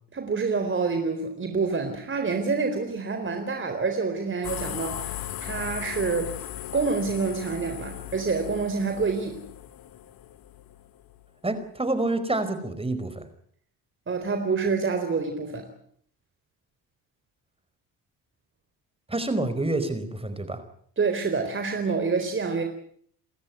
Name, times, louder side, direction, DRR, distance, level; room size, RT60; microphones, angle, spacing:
voice 1, 0.1-6.3 6.7-9.4 14.1-15.7 21.0-22.6, right 4 dB, 30° right, 6 dB, 4.2 m, -27 dB
sound 1, 4.4-11.3, left 12 dB, 65° left, 1.9 m, -37 dB
voice 2, 11.4-13.3 19.1-20.6, right 2 dB, 15° right, 11 dB, 4.9 m, -28 dB
29.5 x 13.5 x 9.4 m, 0.64 s
supercardioid pair, 85°, 37 cm